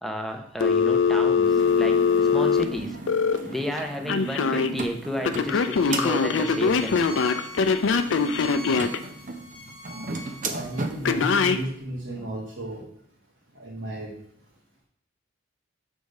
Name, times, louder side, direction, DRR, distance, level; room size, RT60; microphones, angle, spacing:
voice 1, 0.0-3.0 3.5-7.0 12.2-12.3, equal, ahead, 2 dB, 0.7 m, -32 dB
Telephone, 0.6-3.4 4.1-4.7 5.2-9.0 11.1-11.6, left 5 dB, 85° left, 0.5 m, -22 dB
sound 1, 1.4-11.2, right 4 dB, 45° right, 0.7 m, -36 dB
Bowed string instrument, 5.4-10.9, equal, 30° left, 1.2 m, -42 dB
voice 2, 10.5-12.8 13.6-14.1, right 1 dB, 85° right, -5 dB, 1.4 m, -33 dB
6.5 x 3.5 x 5.3 m, 0.69 s
head